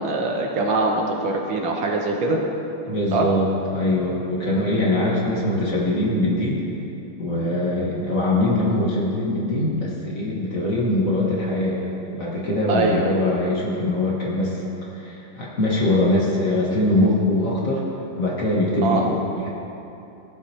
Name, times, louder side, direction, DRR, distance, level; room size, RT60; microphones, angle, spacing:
voice 1, 0.0-2.4 3.1-3.3 12.7-13.1 18.8-19.0, right 2 dB, 70° right, 0 dB, 1.6 m, -22 dB
voice 2, 2.9-6.6 7.2-14.6 14.9-17.8 18.2-19.5, left 1 dB, 45° left, -4 dB, 1.5 m, -22 dB
15.5 x 8.4 x 2.8 m, 2.9 s
omnidirectional pair, 2.3 m